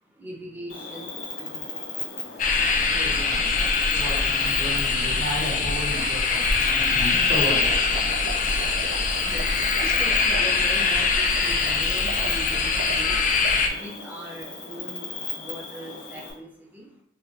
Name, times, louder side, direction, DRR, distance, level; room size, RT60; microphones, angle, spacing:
voice 1, 0.0-3.0 8.0-17.0, equal, 10° right, 0.6 m, -42 dB
Cricket, 0.7-16.3, left 3 dB, 75° left, 0.9 m, -37 dB
voice 2, 2.2-8.1, equal, 75° right, 1.2 m, -33 dB
sound 1, 2.4-13.7, left 4 dB, 45° left, 0.3 m, -23 dB
sound 2, 7.2-13.7, right 5 dB, 55° right, 0.4 m, -39 dB
3.3 x 2.4 x 2.8 m
head